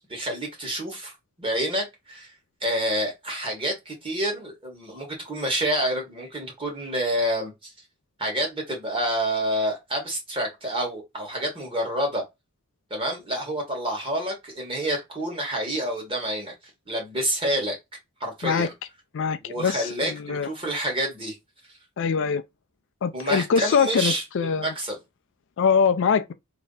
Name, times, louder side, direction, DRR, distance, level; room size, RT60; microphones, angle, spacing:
voice 1, 0.1-1.1 1.4-2.3 2.6-7.5 8.2-12.2 12.9-16.5 16.9-17.8 18.2-18.7 19.4-21.3 23.1-24.2 24.5-24.9, right 1 dB, 25° right, 1.7 m, -28 dB
voice 2, 19.1-20.5 22.0-22.4 23.0-24.7 25.6-26.3, left 6 dB, 55° left, 0.4 m, -23 dB
3.3 x 2.9 x 4.0 m
head